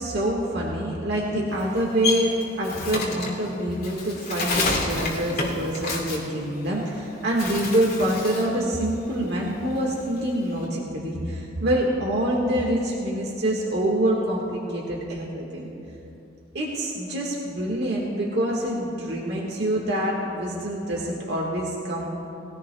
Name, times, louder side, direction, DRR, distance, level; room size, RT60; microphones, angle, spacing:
voice 1, 0.0-15.7 16.5-22.1, right 1 dB, 60° right, -3 dB, 1.6 m, -26 dB
Bird, 1.5-7.0 7.3-8.6 8.9-10.6, left 3 dB, 55° left, 2.7 m, -29 dB
20.5 x 16.5 x 2.3 m, 2.8 s
head